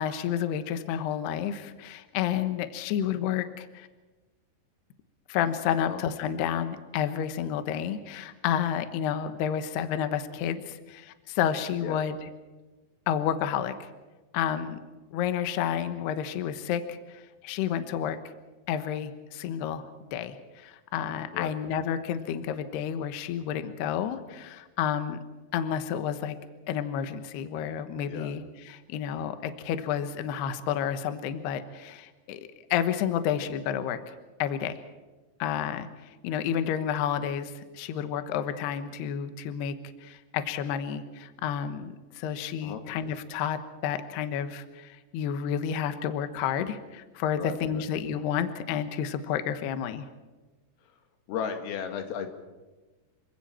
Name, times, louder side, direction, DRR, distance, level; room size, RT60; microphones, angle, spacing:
voice 1, 0.0-3.9 5.3-12.2 13.1-13.9 14.3-14.8 15.1-18.2 18.7-19.8 20.1-25.2 25.5-26.4 26.7-32.4 32.7-34.1 34.4-34.8 35.4-35.9 36.2-39.8 40.0-50.0, left 9 dB, 70° left, 9 dB, 2.8 m, -30 dB
voice 2, 47.4-47.8 51.3-52.3, left 7 dB, 90° left, 6 dB, 4.6 m, -34 dB
28.5 x 24.5 x 4.4 m, 1.2 s
omnidirectional pair, 5.8 m